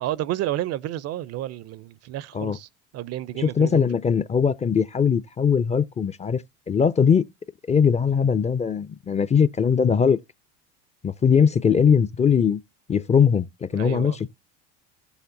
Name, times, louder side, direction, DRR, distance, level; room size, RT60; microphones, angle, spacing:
voice 1, 0.0-2.7 2.9-3.9 13.7-14.2, right 14 dB, 45° right, 0.5 m, -30 dB
voice 2, 3.4-7.2 7.7-10.2 11.0-12.6 12.9-14.3, left 6 dB, 20° left, 0.5 m, -20 dB
15.0 x 7.1 x 2.6 m
hypercardioid pair, 75°, 37 cm